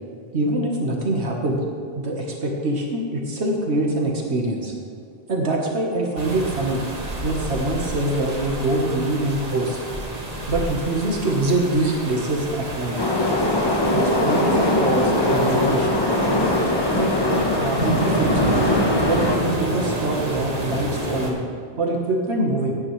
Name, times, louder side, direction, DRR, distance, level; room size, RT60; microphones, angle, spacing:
voice 1, 0.3-1.6 1.9-4.7 5.3-6.8 7.2-9.8 10.5-13.0 13.9-16.0 16.9-18.7 19.0-21.4 21.8-22.8, right 2 dB, 80° right, 0 dB, 1.6 m, -24 dB
sound 1, 6.2-21.3, right 1 dB, 35° right, 1.6 m, -29 dB
Subway metro underground, 13.0-19.4, left 1 dB, 25° left, 1.1 m, -21 dB
16.0 x 9.9 x 3.2 m, 2.4 s
omnidirectional pair, 1.1 m